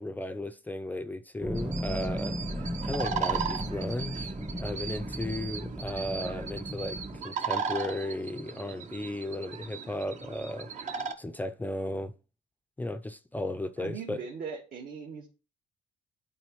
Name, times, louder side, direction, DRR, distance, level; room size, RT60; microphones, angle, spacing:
voice 1, 0.0-7.0 7.2-10.7 11.2-12.1 12.8-14.2, left 1 dB, 10° left, 0.5 m, -35 dB
sound 1, 1.4-7.2, equal, 10° right, 0.8 m, -36 dB
sound 2, 1.6-11.1, right 6 dB, 45° right, 0.9 m, -37 dB
voice 2, 13.8-15.3, right 5 dB, 65° right, 1.8 m, -39 dB
11.0 x 4.2 x 3.1 m
cardioid pair, 110°, 17 cm